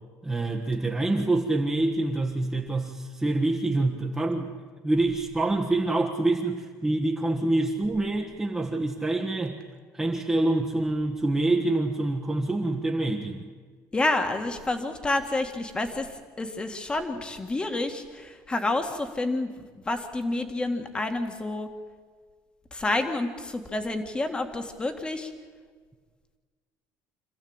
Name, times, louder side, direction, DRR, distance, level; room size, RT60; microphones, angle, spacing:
voice 1, 0.2-4.5 4.8-9.6 9.9-13.5, right 2 dB, 10° right, -2 dB, 1.5 m, -26 dB
voice 2, 13.9-16.1 16.4-19.5 19.9-21.7 22.7-25.3, left 2 dB, 15° left, 6 dB, 1.9 m, -29 dB
27.0 x 15.0 x 8.9 m, 1.5 s
cardioid pair, 155°, 6 cm